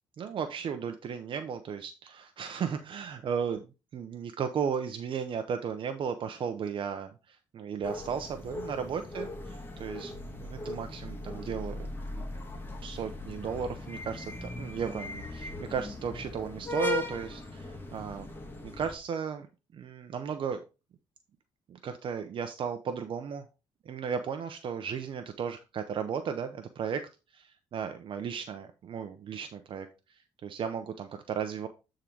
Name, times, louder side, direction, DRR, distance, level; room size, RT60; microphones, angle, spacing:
voice 1, 0.2-9.3 9.8-10.1 10.4-11.7 12.1-12.2 12.8-18.3 18.6-19.5 19.7-20.6 21.7-23.4 23.9-27.0 27.3-31.7, right 7 dB, 55° right, 7 dB, 0.7 m, -35 dB
sound 1, 7.8-18.9, left 2 dB, 20° left, 1.7 m, -38 dB
8.4 x 3.8 x 4.5 m, 0.29 s
cardioid pair, 100°, 10 cm